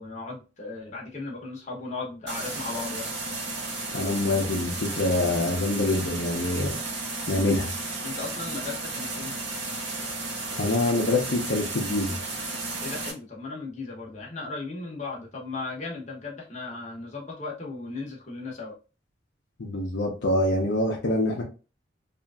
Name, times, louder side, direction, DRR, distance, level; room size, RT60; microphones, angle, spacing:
voice 1, 0.0-3.1 8.0-9.3 12.8-18.8, left 3 dB, 35° left, -2 dB, 0.8 m, -36 dB
sound 1, 2.3-13.1, right 2 dB, 70° right, 0.7 m, -33 dB
voice 2, 3.9-6.7 7.3-7.7 10.6-12.1 19.6-21.4, left 2 dB, 65° left, 0 dB, 0.6 m, -25 dB
2.8 x 2.5 x 2.3 m, 0.32 s
head